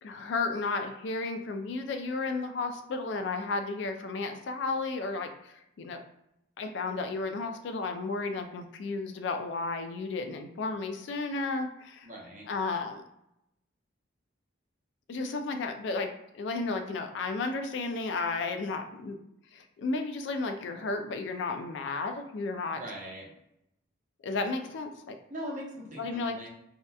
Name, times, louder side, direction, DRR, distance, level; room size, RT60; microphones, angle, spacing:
voice 1, 0.0-6.0 6.6-12.1 12.5-13.0 15.1-19.2 19.5-22.8 24.2-25.2 26.0-26.4, left 3 dB, 65° left, 6 dB, 0.3 m, -33 dB
voice 2, 12.0-12.5 22.7-23.3 25.3-26.5, equal, 40° right, -3 dB, 0.6 m, -41 dB
2.7 x 2.1 x 2.3 m, 0.82 s
head